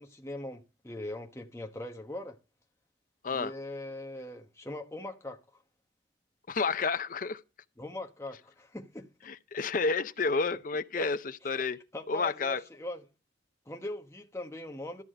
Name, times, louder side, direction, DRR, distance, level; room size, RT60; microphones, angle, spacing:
voice 1, 0.0-2.4 3.3-5.6 7.8-9.1 10.5-10.6 10.9-11.1 11.9-13.1 13.7-15.0, left 1 dB, 15° left, 1.1 m, -41 dB
voice 2, 6.5-7.4 9.3-11.2 11.4-11.8 12.1-12.6, left 4 dB, 45° left, 0.5 m, -30 dB
13.5 x 4.8 x 7.5 m
head